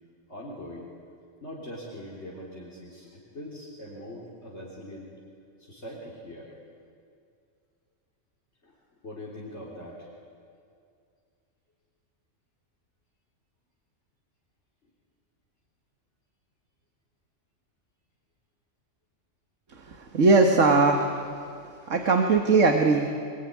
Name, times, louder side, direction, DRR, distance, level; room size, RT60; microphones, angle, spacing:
voice 1, 0.3-0.9 1.4-5.1 5.6-6.5 8.6-8.8 9.0-10.1 21.8-22.1, left 1 dB, 65° left, -4 dB, 4.1 m, -42 dB
voice 2, 19.7-21.3 21.6-23.1, right 3 dB, 80° right, 3 dB, 1.9 m, -21 dB
25.0 x 21.5 x 9.6 m, 2.3 s
omnidirectional pair, 1.3 m